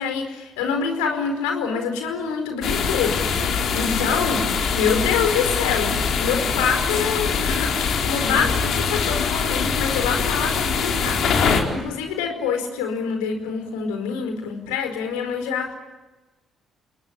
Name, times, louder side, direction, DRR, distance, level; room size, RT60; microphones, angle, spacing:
voice 1, 0.0-4.5 4.7-15.7, left 6 dB, 75° left, 5 dB, 4.8 m, -26 dB
sound 1, 2.6-11.6, left 6 dB, 60° left, 4.4 m, -23 dB
30.0 x 20.0 x 10.0 m, 1.2 s
hypercardioid pair, 45°, 0 cm